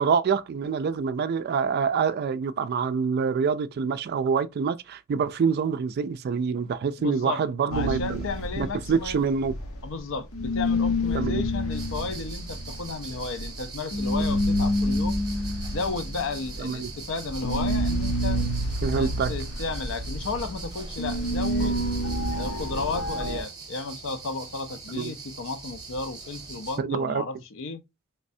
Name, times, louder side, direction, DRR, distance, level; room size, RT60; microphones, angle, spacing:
voice 1, 0.0-8.3 8.6-9.5 11.1-11.5 16.6-16.9 18.8-19.3 24.9-25.1 26.8-27.2, right 6 dB, 50° right, 0.3 m, -26 dB
voice 2, 7.0-7.4 7.7-9.2 9.8-15.2 15.7-18.4 18.9-21.8 22.4-27.8, left 4 dB, 65° left, 0.5 m, -33 dB
sound 1, 7.7-10.1 10.3-23.4, left 1 dB, 80° left, 0.9 m, -28 dB
sound 2, 11.7-26.8, right 5 dB, 20° right, 0.8 m, -42 dB
3.3 x 3.2 x 2.6 m
head